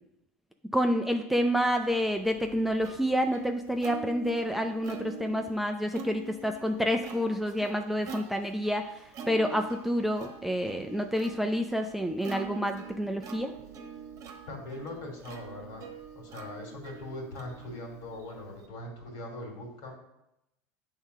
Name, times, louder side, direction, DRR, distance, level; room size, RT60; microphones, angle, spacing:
voice 1, 0.7-8.9 9.3-13.5, equal, 5° right, 4 dB, 0.5 m, -28 dB
Plucked string instrument, 1.9-18.7, right 5 dB, 45° right, 1.1 m, -45 dB
voice 2, 14.5-15.8 16.1-20.0, left 1 dB, 60° left, 0 dB, 2.6 m, -41 dB
7.1 x 3.7 x 5.4 m, 0.87 s
hypercardioid pair, 80°, 8 cm